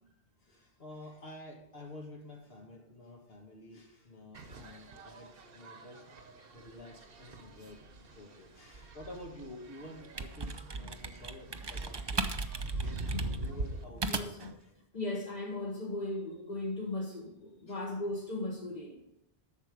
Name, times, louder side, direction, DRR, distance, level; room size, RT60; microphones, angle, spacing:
voice 1, 0.4-6.1 6.5-12.4 12.8-14.7 17.7-17.8, left 1 dB, 65° left, 1 dB, 1.7 m, -50 dB
sound 1, 4.3-13.8, right 2 dB, 60° right, 1.2 m, -43 dB
sound 2, 9.9-14.6, right 3 dB, 30° right, 0.5 m, -38 dB
voice 2, 13.1-13.4 14.0-14.5 14.9-19.0, left 2 dB, 40° left, -1 dB, 1.4 m, -37 dB
11.5 x 7.2 x 5.1 m, 0.83 s
omnidirectional pair, 1.1 m